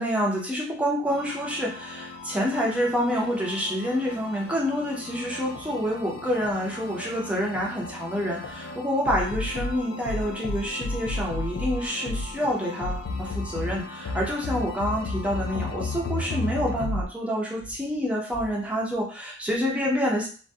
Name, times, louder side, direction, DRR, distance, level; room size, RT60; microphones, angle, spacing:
voice 1, 0.0-20.3, equal, 5° right, -3 dB, 0.6 m, -27 dB
sound 1, 1.1-17.0, left 2 dB, 75° left, 0.3 m, -34 dB
2.6 x 2.1 x 2.2 m, 0.40 s
head